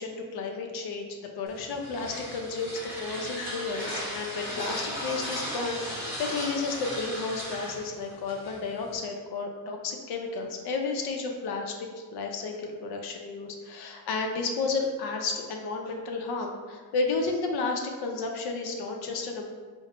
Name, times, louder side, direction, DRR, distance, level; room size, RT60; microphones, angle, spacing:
voice 1, 0.0-19.4, left 3 dB, 85° left, 2 dB, 0.6 m, -32 dB
sound 1, 1.5-9.0, equal, 5° right, 0.8 m, -37 dB
4.4 x 2.1 x 2.9 m, 1.5 s
cardioid pair, 175°, 38 cm